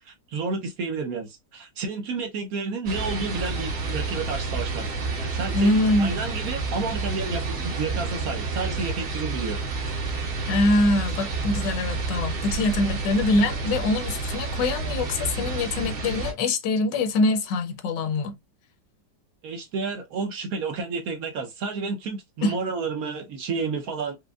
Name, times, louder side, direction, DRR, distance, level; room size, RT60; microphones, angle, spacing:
voice 1, 0.0-4.8 5.2-9.6 19.4-24.2, right 4 dB, 65° right, 1.0 m, -31 dB
sound 1, 2.9-16.3, right 4 dB, 50° right, 1.4 m, -29 dB
voice 2, 5.5-6.2 10.5-18.3 22.4-22.5, left 2 dB, 75° left, 1.3 m, -24 dB
5.1 x 2.2 x 2.3 m
omnidirectional pair, 1.9 m